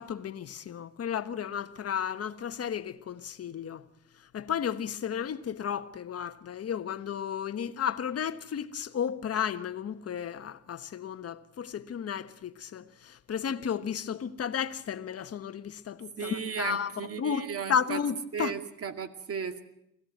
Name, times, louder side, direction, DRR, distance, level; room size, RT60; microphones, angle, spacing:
voice 1, 0.0-3.8 4.3-16.9 17.2-18.5, left 8 dB, 50° left, 1.4 m, -33 dB
voice 2, 16.2-18.0 18.3-19.7, right 7 dB, 50° right, 2.3 m, -35 dB
24.0 x 16.5 x 9.4 m
cardioid pair, 90°, 30 cm